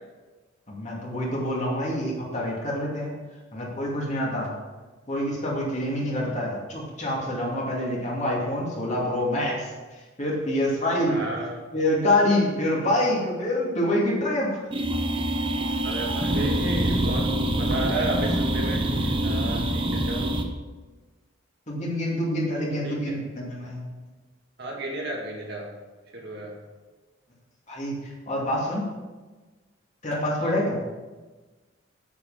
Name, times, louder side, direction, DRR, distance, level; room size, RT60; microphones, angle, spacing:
voice 1, 0.7-3.1 3.5-4.5 5.1-11.2 11.7-14.7 15.7-15.8 21.7-23.8 27.7-28.8 30.0-30.8, left 1 dB, 35° left, -3 dB, 2.5 m, -26 dB
voice 2, 11.0-11.7 15.8-20.3 22.7-23.1 24.6-25.8 26.1-26.5 30.4-30.6, right 1 dB, 55° right, -1 dB, 2.1 m, -33 dB
sound 1, 14.7-20.4, right 1 dB, 25° right, 0.9 m, -25 dB
8.5 x 8.1 x 5.7 m, 1.3 s
head